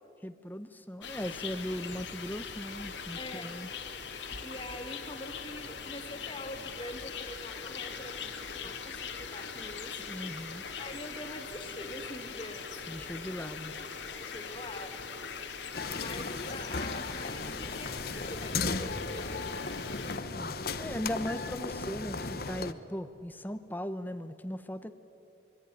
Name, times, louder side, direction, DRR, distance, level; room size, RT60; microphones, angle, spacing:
voice 1, 0.2-3.7 10.0-10.6 12.9-13.7 20.3-24.9, equal, 10° left, 10 dB, 0.8 m, -38 dB
sound 1, 1.0-20.2, left 5 dB, 80° left, 2.4 m, -41 dB
voice 2, 3.2-3.6 4.4-10.2 10.7-12.7 14.2-15.0 16.0-19.5, left 1 dB, 30° left, 5 dB, 2.4 m, -44 dB
sound 2, 15.7-22.7, left 4 dB, 55° left, 1.1 m, -36 dB
25.0 x 23.5 x 9.8 m, 2.7 s
head